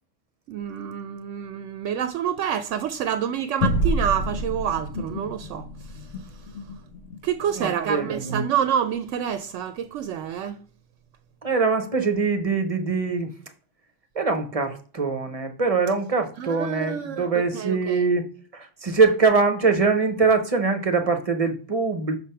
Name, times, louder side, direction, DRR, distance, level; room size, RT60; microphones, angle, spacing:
voice 1, 0.5-5.7 7.2-10.6 16.4-18.0, right 9 dB, 80° right, 0.9 m, -27 dB
sound 1, 3.6-8.4, equal, 75° left, 1.4 m, -29 dB
voice 2, 7.6-8.3 11.4-13.3 14.2-18.2 18.5-22.2, right 4 dB, 35° right, 0.8 m, -23 dB
6.3 x 3.3 x 5.6 m
omnidirectional pair, 1.3 m